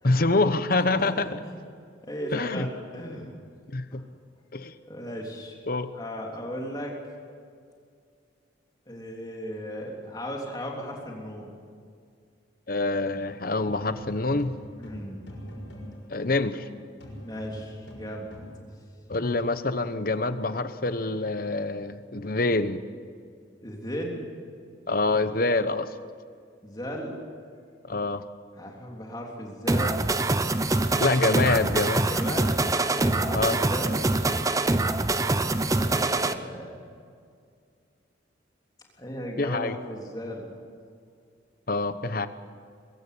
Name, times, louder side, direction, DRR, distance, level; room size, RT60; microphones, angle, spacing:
voice 1, 0.0-1.3 2.3-2.7 3.7-4.0 4.5-4.7 5.7-5.9 12.7-14.5 16.1-16.7 19.1-22.8 24.9-25.9 27.9-28.3 31.0-32.1 33.3-33.6 39.4-39.8 41.7-42.3, left 2 dB, 50° left, 12 dB, 1.0 m, -26 dB
voice 2, 0.7-1.5 2.0-3.3 3.9-4.1 4.8-5.5 5.9-7.0 8.9-11.5 14.8-15.2 17.2-18.3 23.6-24.3 26.6-27.2 28.5-30.0 32.1-32.6 32.9-34.0 35.7-36.8 39.0-40.5, equal, 20° left, -1 dB, 3.4 m, -36 dB
sound 1, 13.7-16.7 17.0-18.6, equal, 75° left, 6.6 m, -43 dB
sound 2, 29.7-36.3, right 2 dB, 15° right, 0.6 m, -24 dB
23.0 x 15.0 x 8.5 m, 2.2 s
head